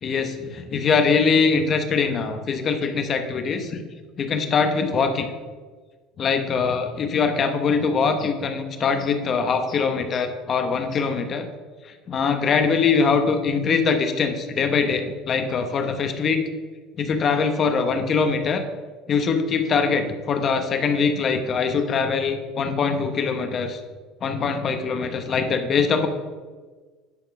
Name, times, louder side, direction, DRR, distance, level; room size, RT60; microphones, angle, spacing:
voice 1, 0.0-3.8 4.2-5.3 6.2-11.5 11.8-16.5 17.0-18.6 19.1-23.8 24.2-26.1, left 5 dB, 35° left, 7 dB, 0.9 m, -22 dB
9.9 x 4.4 x 5.9 m, 1.4 s
cardioid pair, 145°, 0 cm